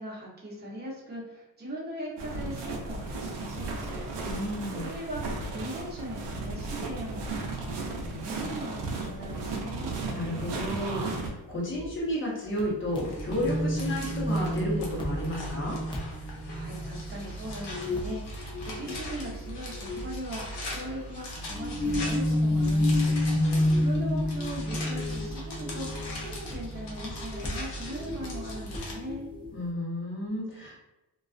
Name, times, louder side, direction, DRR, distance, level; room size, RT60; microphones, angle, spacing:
voice 1, 0.0-4.0 4.8-8.7 9.0-9.9 16.2-29.3, right 1 dB, 25° right, -5 dB, 0.8 m, -40 dB
sound 1, 2.2-11.3, right 3 dB, 80° right, 0.7 m, -35 dB
voice 2, 4.2-4.9 10.1-15.8 23.3-24.2 29.5-30.8, left 1 dB, 30° left, -4 dB, 0.8 m, -32 dB
sound 2, 11.7-11.9 12.6-12.7 13.0-17.1 17.5-18.2 18.5-20.2 21.6-29.5, left 1 dB, 15° left, 0.3 m, -30 dB
sound 3, 12.5-28.9, equal, 80° left, 0.8 m, -39 dB
2.3 x 2.3 x 2.4 m, 0.94 s
cardioid pair, 145°, 41 cm